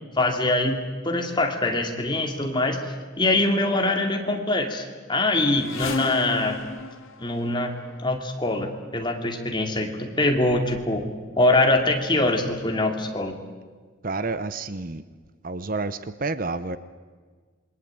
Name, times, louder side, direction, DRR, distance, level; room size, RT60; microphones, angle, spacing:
voice 1, 0.1-6.6 7.2-7.7 8.0-11.0 11.4-13.3, left 2 dB, 20° left, 3 dB, 2.6 m, -23 dB
sound 1, 5.5-8.0 9.0-9.2 10.0-10.1 10.3-11.2 11.5-12.1 12.8-12.9 13.2-13.3, left 2 dB, 75° left, 1.9 m, -34 dB
voice 2, 14.0-15.0 15.4-16.8, right 3 dB, 40° right, 13 dB, 0.8 m, -29 dB
27.5 x 22.5 x 8.9 m, 1.5 s
head